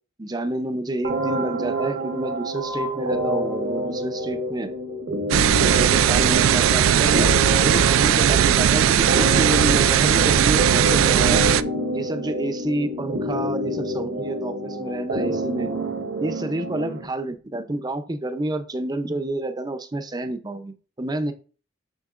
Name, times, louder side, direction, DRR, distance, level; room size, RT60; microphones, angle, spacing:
voice 1, 0.2-4.7 5.6-11.4 11.9-15.7 16.2-21.3, right 1 dB, 20° right, 9 dB, 0.5 m, -29 dB
sound 1, 1.0-17.0, right 1 dB, 60° right, 1.0 m, -28 dB
sound 2, 5.3-11.6, right 9 dB, 75° right, 0.3 m, -18 dB
6.6 x 6.5 x 2.5 m, 0.38 s
head